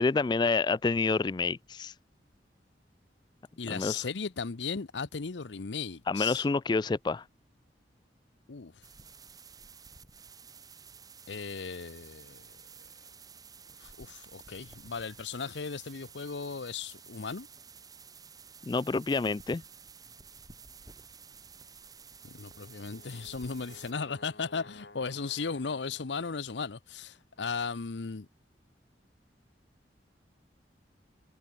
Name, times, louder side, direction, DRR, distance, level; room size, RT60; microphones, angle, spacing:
voice 1, 0.0-1.9 3.7-4.1 6.1-7.2 18.7-19.6, left 4 dB, 25° left, 0.3 m, -28 dB
voice 2, 3.6-6.4 8.5-8.7 11.3-12.4 13.8-17.5 22.2-28.3, left 5 dB, 85° left, 0.8 m, -36 dB
sound 1, 8.8-23.9, right 6 dB, 20° right, 4.3 m, -52 dB
Brass instrument, 22.2-26.5, left 2 dB, 65° left, 3.9 m, -54 dB
head